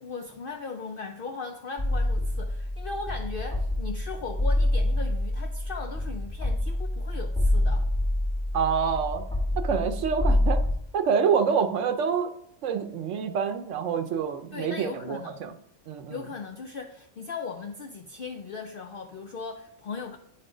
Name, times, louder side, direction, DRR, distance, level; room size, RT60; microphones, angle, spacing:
voice 1, 0.0-7.9 14.5-15.4 16.1-20.2, left 4 dB, 55° left, 4 dB, 0.7 m, -38 dB
sound 1, 1.8-10.8, left 1 dB, 5° left, 1.3 m, -26 dB
voice 2, 8.5-9.2 9.6-10.6 10.9-12.3 12.6-15.5 15.9-16.2, right 6 dB, 75° right, 9 dB, 1.0 m, -26 dB
8.6 x 4.4 x 5.0 m, 0.69 s
omnidirectional pair, 1.3 m